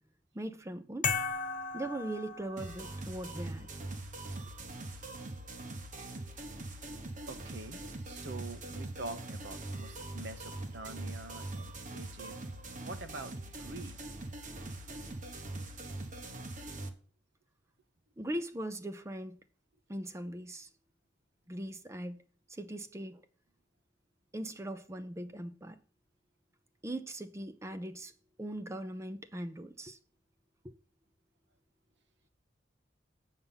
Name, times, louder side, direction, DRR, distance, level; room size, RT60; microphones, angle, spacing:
voice 1, 0.3-1.1 1.7-3.7 18.2-19.4 19.9-20.7 21.5-22.2 22.5-23.2 24.3-25.8 26.8-28.1 28.4-30.0 30.6-30.7, right 1 dB, 15° right, 0.5 m, -40 dB
sound 1, 1.0-2.9, left 5 dB, 40° left, 1.2 m, -35 dB
sound 2, 2.6-16.9, right 2 dB, 40° right, 1.1 m, -42 dB
voice 2, 7.2-12.4 12.8-14.1, right 2 dB, 65° right, 1.0 m, -46 dB
8.3 x 5.7 x 5.6 m
head